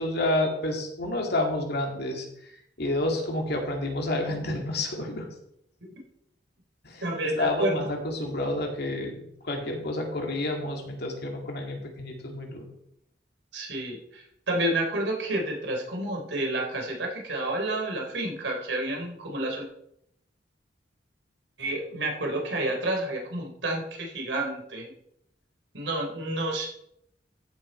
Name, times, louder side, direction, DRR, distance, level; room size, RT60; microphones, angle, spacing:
voice 1, 0.0-2.3 2.8-5.3 6.8-7.1 7.4-9.2 9.4-12.6, left 1 dB, 65° left, 2 dB, 2.4 m, -29 dB
voice 2, 7.0-7.8 13.5-19.7 21.6-24.9 25.7-26.7, right 1 dB, 85° right, 0 dB, 3.5 m, -30 dB
14.5 x 7.2 x 4.5 m, 0.76 s
head